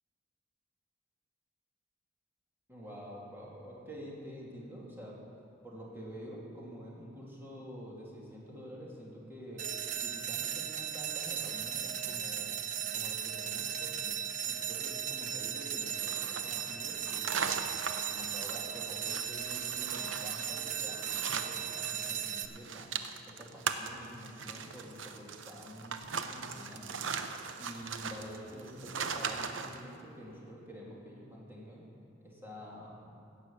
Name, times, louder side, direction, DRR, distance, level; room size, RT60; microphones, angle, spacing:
voice 1, 2.7-5.2 5.6-9.6 10.0-12.7 12.9-14.1 14.4-17.7 18.1-22.9 23.2-26.0 26.3-27.0 27.6-31.8 32.2-33.0, equal, 10° right, -5 dB, 2.7 m, -47 dB
sound 1, 9.6-22.4, right 9 dB, 40° right, 0.7 m, -36 dB
sound 2, 16.0-22.1 22.4-29.8, right 6 dB, 80° right, 0.7 m, -39 dB
17.0 x 6.2 x 7.0 m, 2.5 s
head